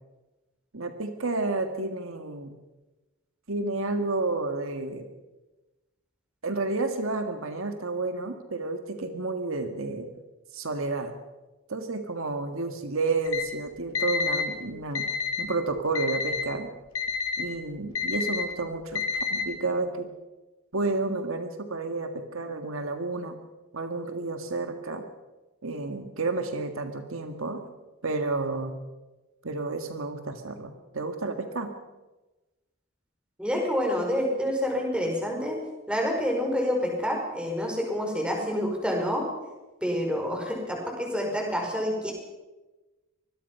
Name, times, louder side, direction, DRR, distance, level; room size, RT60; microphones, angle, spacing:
voice 1, 0.7-2.6 3.5-5.0 6.4-10.1 10.5-11.1 11.7-15.1 15.4-16.7 17.4-19.0 19.3-20.1 20.7-23.4 23.7-25.0 25.6-27.6 28.0-28.8 29.4-31.7, right 3 dB, 70° right, 7 dB, 1.7 m, -31 dB
Alarm, 13.3-13.4 13.9-14.4 14.9-15.4 15.9-16.4 16.9-17.4 17.9-18.4 18.9-19.4, left 5 dB, 80° left, 3.6 m, -28 dB
voice 2, 33.4-35.6 35.9-39.2 39.8-42.1, equal, 5° right, 0 dB, 5.4 m, -28 dB
24.5 x 20.5 x 5.6 m, 1.1 s
head